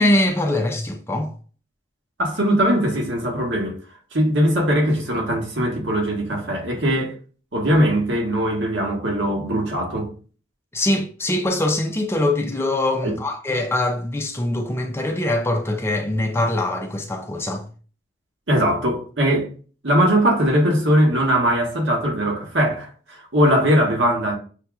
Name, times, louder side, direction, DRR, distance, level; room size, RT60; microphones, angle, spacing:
voice 1, 0.0-1.3 10.7-17.7, left 1 dB, 15° left, 0.4 m, -23 dB
voice 2, 2.2-3.8 4.1-7.1 7.5-10.1 13.0-13.2 18.5-19.5 19.8-24.4, equal, 70° right, 1.3 m, -20 dB
6.5 x 2.8 x 2.3 m
head